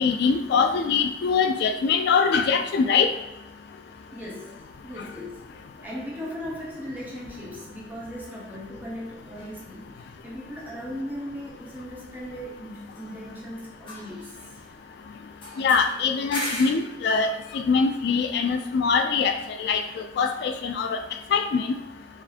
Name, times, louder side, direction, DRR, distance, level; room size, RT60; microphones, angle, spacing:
voice 1, 0.0-3.1 15.6-21.0 21.3-21.7, left 5 dB, 65° left, 7 dB, 0.3 m, -23 dB
voice 2, 4.1-5.5 5.8-14.4, equal, 10° right, -5 dB, 1.2 m, -38 dB
sound 1, 9.4-9.5 12.7-13.5 13.8-14.9 15.4-16.9, left 1 dB, 30° left, 1.2 m, -37 dB
4.6 x 2.5 x 3.5 m, 0.98 s
head